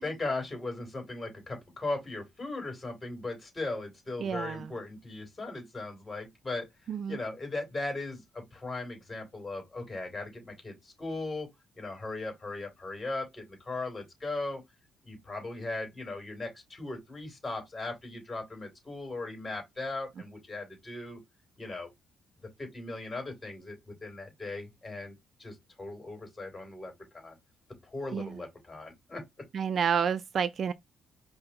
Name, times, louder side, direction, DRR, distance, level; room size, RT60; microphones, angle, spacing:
voice 1, 0.0-6.7 7.1-11.5 11.8-14.6 15.0-21.2 21.6-21.9 22.6-27.4 27.8-29.2, left 2 dB, 20° left, 3.5 m, -38 dB
voice 2, 4.2-4.7 6.9-7.2 28.1-28.4 29.5-30.7, right 7 dB, 50° right, 0.4 m, -30 dB
5.0 x 2.1 x 4.4 m
cardioid pair, 115°, 0 cm